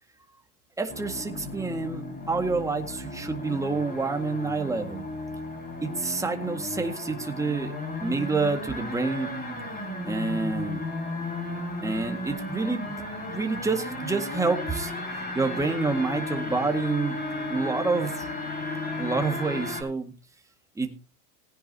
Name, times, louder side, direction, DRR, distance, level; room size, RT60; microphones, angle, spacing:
voice 1, 0.8-5.1 5.8-7.7 8.0-9.3 10.1-10.8 11.8-13.0 13.3-17.2 17.5-18.5 19.0-20.1 20.8-20.9, right 3 dB, 5° right, 5 dB, 1.9 m, -28 dB
sound 1, 0.9-19.8, left 2 dB, 20° left, 5.5 m, -34 dB
20.0 x 10.0 x 2.8 m, 0.31 s
hypercardioid pair, 125°, 48 cm